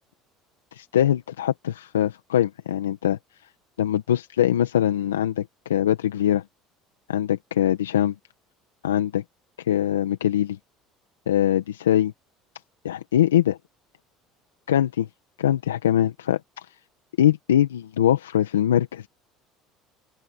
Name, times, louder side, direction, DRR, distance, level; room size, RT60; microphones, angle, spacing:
voice 1, 0.7-3.2 3.8-6.4 7.1-8.1 8.8-9.2 9.6-10.6 11.3-12.1 12.8-13.5 14.7-15.1 15.4-16.6 17.2-19.1, left 11 dB, 90° left, 1.6 m, -22 dB
open air
hypercardioid pair, 70°, 0 cm